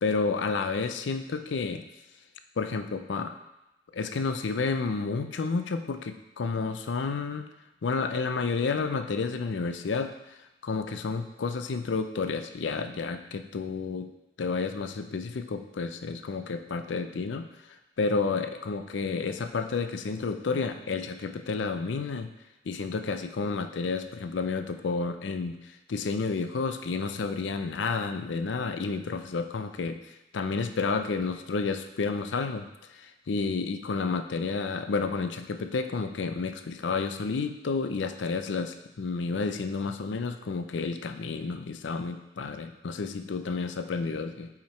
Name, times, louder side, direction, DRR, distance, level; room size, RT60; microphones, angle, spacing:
voice 1, 0.0-1.8 2.6-3.3 3.9-7.5 7.8-14.1 14.4-22.3 22.7-30.0 30.3-32.7 32.9-44.5, left 4 dB, 75° left, 8 dB, 0.5 m, -31 dB
5.6 x 5.0 x 4.4 m, 0.96 s
head